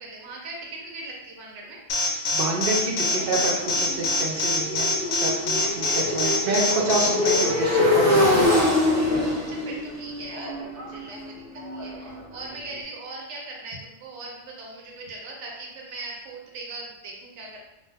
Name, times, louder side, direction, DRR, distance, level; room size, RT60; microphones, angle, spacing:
voice 1, 0.0-1.8 6.2-6.7 9.5-10.5 10.9-17.6, right 2 dB, 90° right, -2 dB, 1.0 m, -39 dB
Alarm, 1.9-7.4, left 2 dB, 75° left, 0.8 m, -24 dB
voice 2, 2.3-8.3, right 2 dB, 60° right, 0 dB, 0.8 m, -28 dB
Motorcycle, 2.7-12.6, left 2 dB, 20° right, 0.4 m, -25 dB
2.6 x 2.1 x 3.3 m, 0.96 s
omnidirectional pair, 1.2 m